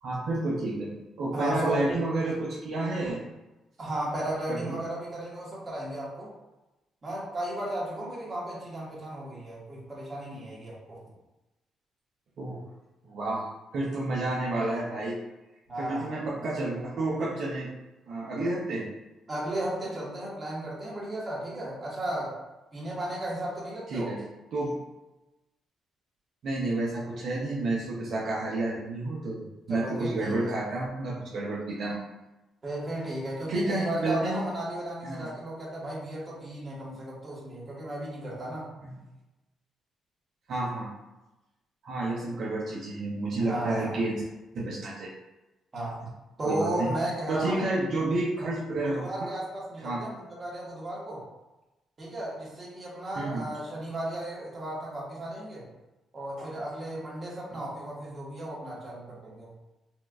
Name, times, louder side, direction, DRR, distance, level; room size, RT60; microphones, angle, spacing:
voice 1, 0.0-3.2 4.5-4.8 12.4-12.6 13.0-13.5 13.7-15.2 15.8-17.7 18.1-18.9 23.9-24.2 24.5-24.7 26.4-32.0 33.5-34.5 35.0-35.3 38.8-38.9 40.5-40.9 41.8-44.3 44.5-45.1 46.4-46.9 47.3-49.3 49.8-50.0 53.2-53.5 56.4-56.5 57.5-57.6, right 2 dB, 65° right, -5 dB, 0.7 m, -30 dB
voice 2, 1.3-1.8 3.8-6.3 7.0-11.0 15.7-16.1 19.3-22.4 22.7-24.1 29.7-30.6 32.6-38.7 43.4-44.0 45.7-46.0 46.4-47.7 48.8-51.2 52.0-55.6 56.1-59.5, right 1 dB, 35° right, -5 dB, 1.4 m, -34 dB
4.3 x 2.5 x 2.3 m, 1.0 s
cardioid pair, 90°, 0 cm